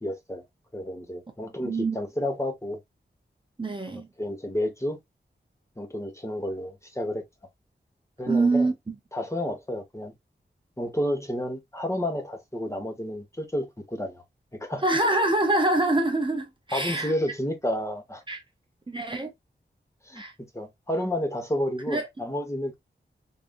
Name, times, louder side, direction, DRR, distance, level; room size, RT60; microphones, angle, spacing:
voice 1, 0.0-0.4 0.7-2.8 4.2-5.0 5.8-7.2 8.2-8.7 9.1-10.1 10.8-14.2 14.6-14.8 16.7-18.2 20.1-20.2 20.5-22.8, left 1 dB, 15° left, 1.2 m, -30 dB
voice 2, 1.6-2.0 3.6-4.1 8.3-8.9 14.8-17.1 18.3-18.4 18.9-19.3 20.1-20.3 21.9-22.0, right 2 dB, 25° right, 0.7 m, -25 dB
3.7 x 3.4 x 2.4 m
wide cardioid pair, 95°, 20 cm